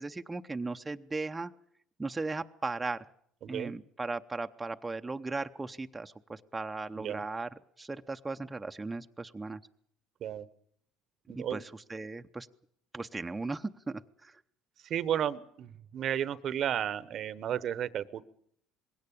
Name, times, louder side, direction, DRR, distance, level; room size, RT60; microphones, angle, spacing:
voice 1, 0.0-1.5 2.0-3.0 3.5-7.5 7.8-9.6 11.3-11.6 11.9-12.5 12.9-14.3, right 3 dB, 15° right, 6 dB, 0.8 m, -37 dB
voice 2, 3.4-3.7 6.9-7.3 10.2-10.5 11.3-11.6 14.8-18.2, right 10 dB, 55° right, 17 dB, 0.9 m, -33 dB
20.5 x 17.0 x 8.6 m, 0.67 s
supercardioid pair, 80°, 0 cm